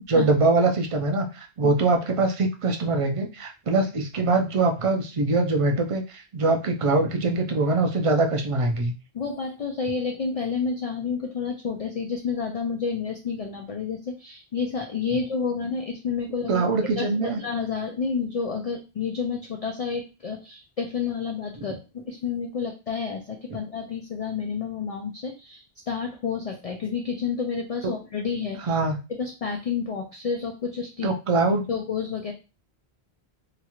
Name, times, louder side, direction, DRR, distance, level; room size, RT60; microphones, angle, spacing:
voice 1, 0.1-8.9 16.5-17.4 28.7-29.0 31.0-31.6, right 3 dB, 45° right, 4 dB, 0.4 m, -23 dB
voice 2, 9.1-28.8 29.1-31.1 31.7-32.3, left 5 dB, 60° left, 2 dB, 0.4 m, -30 dB
2.9 x 2.3 x 2.9 m, 0.30 s
omnidirectional pair, 1.1 m